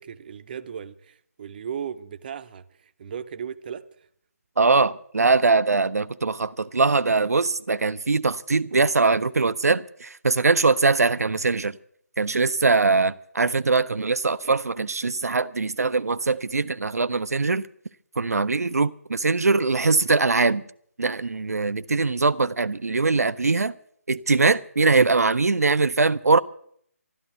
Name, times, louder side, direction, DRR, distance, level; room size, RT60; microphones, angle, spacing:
voice 1, 0.0-4.1, right 8 dB, 35° right, 0.7 m, -36 dB
voice 2, 4.6-11.8 12.2-17.6 18.2-20.6 21.0-23.7 24.1-26.4, right 3 dB, 80° right, 0.5 m, -22 dB
13.0 x 12.5 x 7.8 m
figure-of-eight pair, 150°, 8 cm